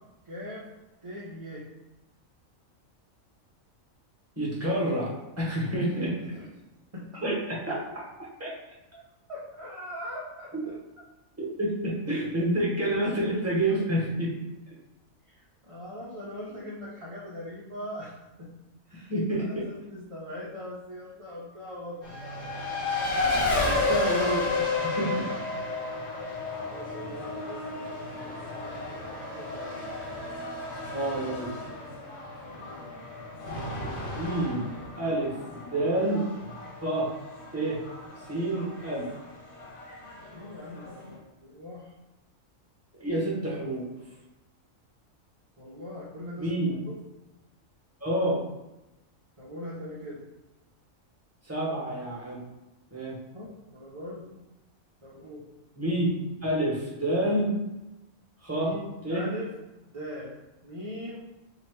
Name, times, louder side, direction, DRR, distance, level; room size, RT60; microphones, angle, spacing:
voice 1, 0.2-0.7 1.0-1.7 5.7-6.5 6.9-7.2 9.3-10.7 12.2-12.3 15.6-18.5 18.9-19.1 19.4-22.1 26.6-29.8 32.4-32.8 40.3-41.9 45.6-46.9 49.4-50.2 53.3-54.3 55.0-55.5 58.5-59.5 59.9-60.3 60.6-61.2, left 1 dB, 35° right, -7 dB, 0.6 m, -41 dB
voice 2, 4.4-5.1 5.4-6.1 7.2-7.7 8.4-8.5 10.5-10.6 11.6-14.3 16.5-16.6 19.1-19.6 23.2-25.3 30.9-31.5 34.1-34.7 35.0-36.2 36.8-37.1 37.5-37.8 38.3-39.1 42.9-43.9 46.4-46.8 48.0-48.4 51.4-52.4 52.9-53.1 55.8-57.5 58.4-58.7 59.0-59.2, right 1 dB, 10° right, -5 dB, 1.0 m, -28 dB
Race car auto racing, 22.0-41.2, left 2 dB, 60° left, 1.4 m, -33 dB
2.9 x 2.9 x 4.5 m, 1.0 s
omnidirectional pair, 1.4 m